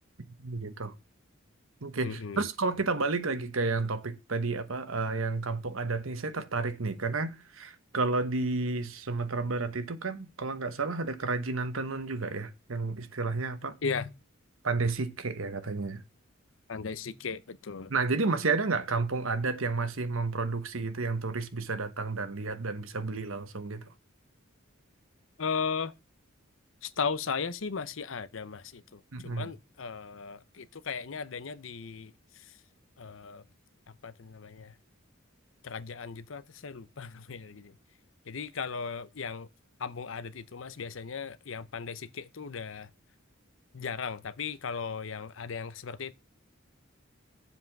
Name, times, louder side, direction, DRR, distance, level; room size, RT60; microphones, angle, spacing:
voice 1, 0.4-0.9 1.8-13.7 14.6-16.0 17.9-23.8 29.1-29.5, right 3 dB, 80° right, 1.1 m, -31 dB
voice 2, 2.0-2.5 13.8-14.1 16.7-17.9 25.4-25.9 26.8-32.1 33.0-33.4 34.0-34.7 35.6-37.7 38.3-39.5 39.8-42.9 43.7-46.1, left 5 dB, 70° left, 0.7 m, -36 dB
7.5 x 5.7 x 5.9 m
head